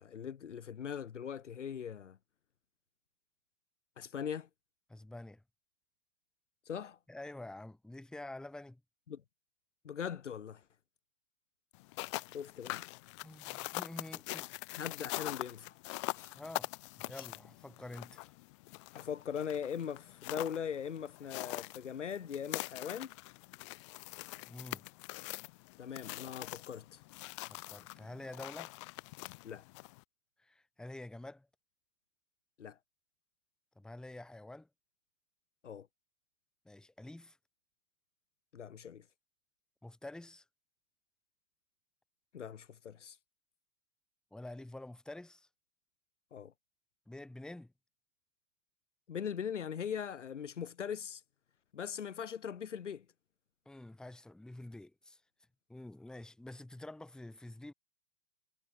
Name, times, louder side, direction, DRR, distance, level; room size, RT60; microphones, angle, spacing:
voice 1, 0.0-2.2 4.0-4.5 6.7-7.0 9.1-9.2 9.8-10.6 12.3-12.9 14.7-15.8 16.1-16.3 17.1-17.3 18.9-23.1 25.8-27.0 29.4-29.6 32.6-32.8 35.6-35.9 38.5-39.0 42.3-43.2 46.3-46.5 49.1-51.2 51.7-53.0, left 8 dB, 70° left, 1.1 m, -40 dB
voice 2, 4.9-5.4 7.1-8.8 13.2-14.5 16.3-18.3 24.5-24.8 27.5-28.7 30.4-31.5 33.8-34.7 36.6-37.4 39.8-40.4 44.3-45.5 47.1-47.7 53.6-55.2 55.7-57.7, left 1 dB, ahead, 1.2 m, -48 dB
sound 1, 11.8-30.0, left 25 dB, 25° left, 0.5 m, -44 dB
figure-of-eight pair, 105°, 38 cm